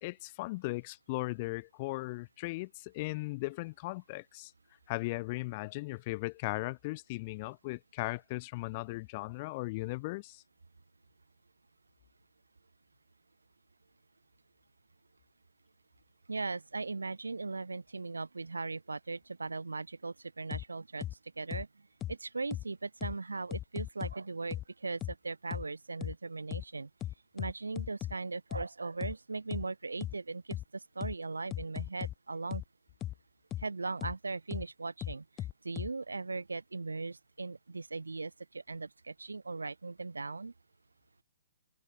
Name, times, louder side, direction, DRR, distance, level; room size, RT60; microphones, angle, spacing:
voice 1, 0.0-4.5 4.9-10.4, left 23 dB, 35° left, 1.7 m, -37 dB
voice 2, 16.3-21.1 21.4-21.7 22.1-26.9 27.3-32.6 33.6-40.5, right 3 dB, 90° right, 3.6 m, -39 dB
sound 1, 20.5-20.6 21.0-21.1 21.5-21.6 22.0-22.1 22.5-22.6 23.0-23.1 23.5-24.1 24.5-24.6 25.0-25.1 25.5-25.6 26.0-26.1 26.5-26.6 27.0-28.1 28.5-28.6 29.0-29.1 29.5-29.6 30.0-30.1 30.5-30.6 31.0-31.1 31.5-32.1 32.5-32.6 33.0-33.1 33.5-33.6 34.0-34.1 34.5-34.6 35.0-35.9, left 13 dB, 20° left, 1.6 m, -37 dB
hypercardioid pair, 135°, 0 cm